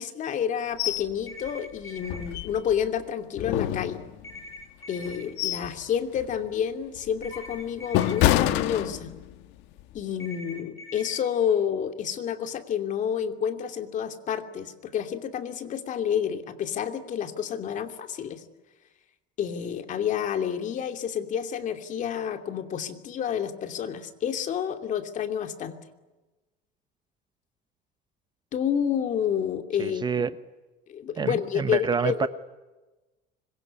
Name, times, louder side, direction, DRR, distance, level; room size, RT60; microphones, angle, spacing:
voice 1, 0.0-4.0 4.9-9.1 9.9-18.4 19.4-25.8 28.5-30.2 30.9-32.3, left 8 dB, 45° left, 2.8 m, -29 dB
sound 1, 0.8-1.1 1.5-1.6 2.0-2.9 3.4-4.4 5.0-5.8 6.2-6.4 7.0-9.4 9.8-10.0, left 13 dB, 80° left, 1.8 m, -27 dB
sound 2, 1.3-2.3 4.2-5.2 7.2-8.2 10.2-11.2, left 1 dB, 15° left, 7.5 m, -43 dB
voice 2, 29.8-30.3 31.2-32.3, right 6 dB, 25° right, 1.0 m, -27 dB
25.5 x 23.0 x 9.8 m
cardioid pair, 145°, 18 cm